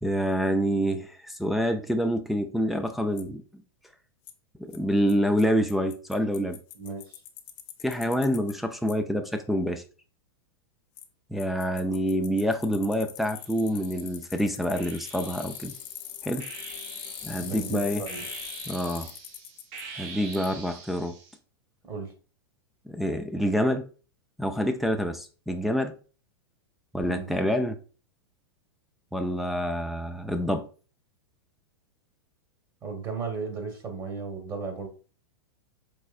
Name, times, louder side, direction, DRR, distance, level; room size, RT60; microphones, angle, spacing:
voice 1, 0.0-3.4 4.7-6.6 7.8-9.8 11.3-15.7 16.2-16.5 17.2-18.0 18.7-19.1 20.0-21.2 22.9-23.8 24.4-25.9 26.9-27.8 29.1-30.7, equal, ahead, 0.4 m, -27 dB
Bicycle, 3.2-3.3 4.3-4.4 4.7-4.8 5.1-5.2 5.4-5.5 5.7-8.5 8.9-9.0 11.0-11.1 11.4-19.8 20.3-20.5, left 11 dB, 45° left, 0.6 m, -41 dB
voice 2, 6.7-7.2 11.8-12.0 17.4-18.2 21.8-22.1 27.0-27.3 32.8-34.9, right 4 dB, 30° right, 1.2 m, -35 dB
sound 1, 13.4-14.1 14.7-21.4, right 5 dB, 45° right, 0.9 m, -45 dB
4.8 x 3.1 x 2.4 m
hypercardioid pair, 100°, 13 cm